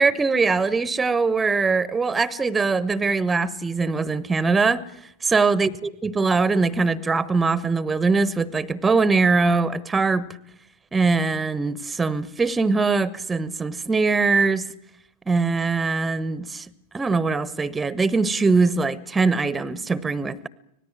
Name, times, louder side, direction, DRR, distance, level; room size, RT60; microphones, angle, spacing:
voice 1, 0.0-10.3 10.9-14.6 15.3-16.7 16.9-20.5, right 4 dB, 15° right, 1.0 m, -22 dB
25.0 x 19.0 x 8.9 m
figure-of-eight pair, 90°, 0 cm